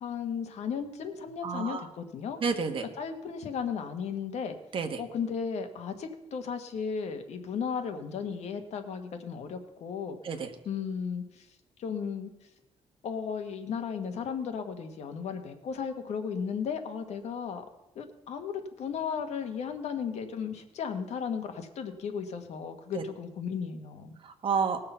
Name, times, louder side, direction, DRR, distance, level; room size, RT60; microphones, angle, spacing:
voice 1, 0.0-2.4 3.0-4.5 5.0-10.2 10.6-11.4 11.8-12.3 13.0-17.6 17.9-24.2, left 6 dB, 75° left, 6 dB, 1.5 m, -35 dB
voice 2, 1.4-1.8 2.4-2.8 4.7-5.0 10.2-10.5 22.9-23.0 24.2-24.9, right 5 dB, 50° right, 6 dB, 1.4 m, -30 dB
19.0 x 6.7 x 5.6 m, 0.96 s
cardioid pair, 140°, 11 cm